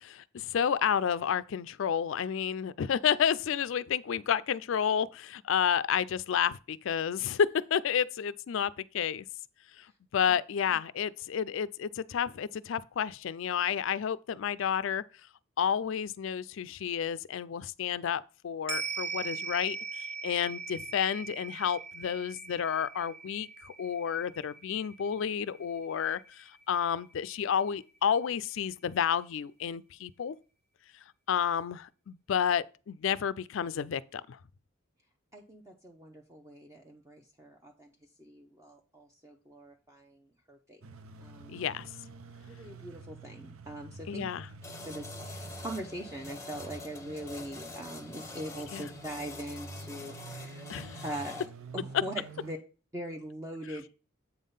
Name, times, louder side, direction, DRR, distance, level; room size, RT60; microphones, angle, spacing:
voice 1, 0.0-9.2 9.8-9.9 10.1-15.0 15.6-30.4 31.3-34.4 41.5-41.9 44.1-44.5 48.7-48.9 50.7-51.0, left 8 dB, 70° left, 0.4 m, -31 dB
sound 1, 18.7-27.2 27.6-27.7, right 4 dB, 50° right, 0.9 m, -41 dB
voice 2, 35.3-37.9 38.2-40.2 40.5-40.8 41.2-41.6 42.5-44.2 44.8-50.6 51.0-51.5 51.7-52.6 52.9-53.9, right 1 dB, 15° right, 0.7 m, -42 dB
sound 2, 40.8-52.5, right 3 dB, 90° right, 0.5 m, -48 dB
sound 3, 44.6-51.5, left 2 dB, 15° left, 0.8 m, -45 dB
8.0 x 3.6 x 5.5 m
head